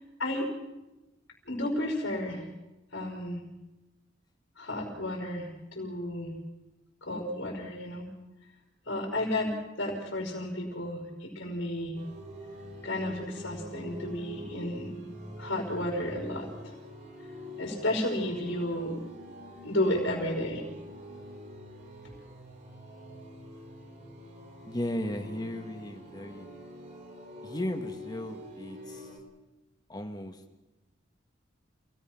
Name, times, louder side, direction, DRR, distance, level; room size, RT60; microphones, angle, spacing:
voice 1, 0.2-0.5 1.5-2.5 2.9-3.4 4.6-6.3 7.0-8.1 8.9-12.0 12.8-14.9 15.4-16.8 17.6-19.0 19.6-20.6, left 1 dB, 80° left, -2 dB, 5.2 m, -32 dB
sound 1, 11.9-29.2, equal, 40° right, 3.7 m, -45 dB
voice 2, 24.6-26.5 27.4-29.0 29.9-30.4, left 1 dB, 20° left, 6 dB, 1.7 m, -35 dB
28.5 x 18.0 x 5.9 m, 1.0 s
head